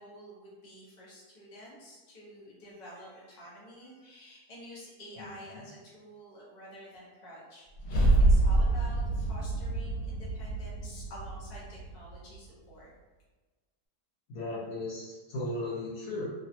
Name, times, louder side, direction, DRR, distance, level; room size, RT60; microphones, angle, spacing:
voice 1, 0.0-12.9, equal, 35° left, -7 dB, 0.8 m, -49 dB
voice 2, 5.2-5.6 14.3-16.3, left 2 dB, 65° left, -7 dB, 1.1 m, -36 dB
sound 1, 7.8-12.1, right 2 dB, 90° left, 1.4 m, -26 dB
3.0 x 2.3 x 2.7 m, 1.3 s
omnidirectional pair, 1.8 m